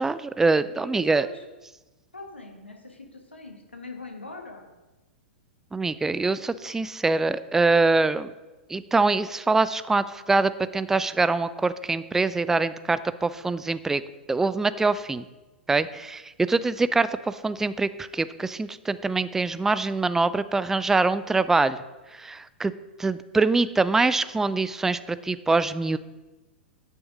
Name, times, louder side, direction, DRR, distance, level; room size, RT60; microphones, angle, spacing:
voice 1, 0.0-1.3 5.7-8.3 8.7-14.0 14.3-15.3 15.7-21.8 22.1-22.7 23.0-26.0, right 3 dB, 5° right, 15 dB, 0.3 m, -24 dB
voice 2, 0.8-1.4 2.1-4.7, left 3 dB, 90° left, 3 dB, 1.5 m, -42 dB
9.1 x 6.2 x 4.8 m, 1.1 s
figure-of-eight pair, 100°, 6 cm